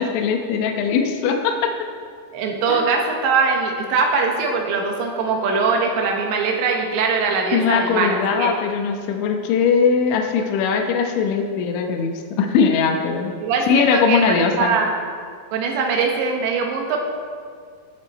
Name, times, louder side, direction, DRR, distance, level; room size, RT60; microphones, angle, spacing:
voice 1, 0.0-1.7 2.7-2.8 7.5-13.3 13.7-14.7, left 6 dB, 80° left, 3 dB, 3.3 m, -20 dB
voice 2, 2.3-8.5 13.4-14.9 15.5-17.0, right 4 dB, 75° right, 1 dB, 3.5 m, -21 dB
18.0 x 7.4 x 4.3 m, 2.1 s
omnidirectional pair, 5.3 m